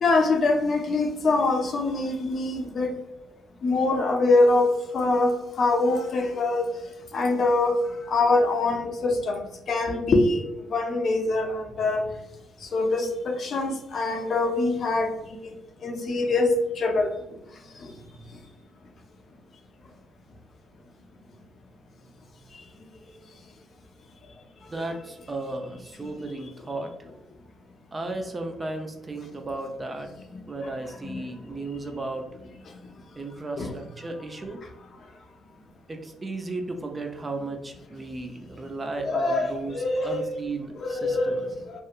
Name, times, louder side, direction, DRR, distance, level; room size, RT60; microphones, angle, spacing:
voice 1, 0.0-2.9 3.6-6.7 7.1-7.8 8.1-10.4 10.7-12.0 12.7-15.1 15.4-15.5 15.8-17.1 31.0-31.2 33.6-33.7 39.0-40.2 40.8-41.5, left 2 dB, 55° left, 3 dB, 0.5 m, -24 dB
voice 2, 24.7-26.9 27.9-30.1 30.5-32.3 33.2-34.7 35.9-41.4, right 2 dB, 25° right, 4 dB, 0.4 m, -35 dB
2.8 x 2.2 x 2.4 m, 0.93 s
cardioid pair, 90°, 0 cm